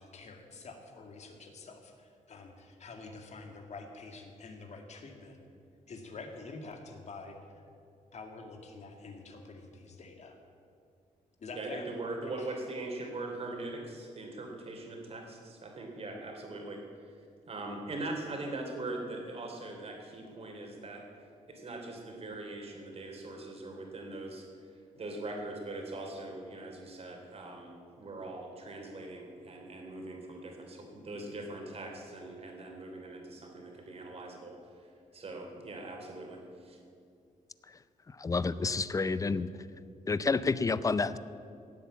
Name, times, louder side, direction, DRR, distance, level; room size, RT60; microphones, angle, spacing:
voice 1, 0.0-5.4 5.9-7.6 8.1-10.4 11.4-11.9 12.2-12.6, left 3 dB, 55° left, 3 dB, 2.1 m, -47 dB
voice 2, 11.5-17.2 17.5-21.0 21.5-34.6 34.8-36.8, right 2 dB, 45° right, 2 dB, 3.0 m, -41 dB
voice 3, 38.2-39.5 40.1-41.2, left 4 dB, 25° left, 15 dB, 0.5 m, -29 dB
16.5 x 8.2 x 8.6 m, 2.4 s
cardioid pair, 110°, 14 cm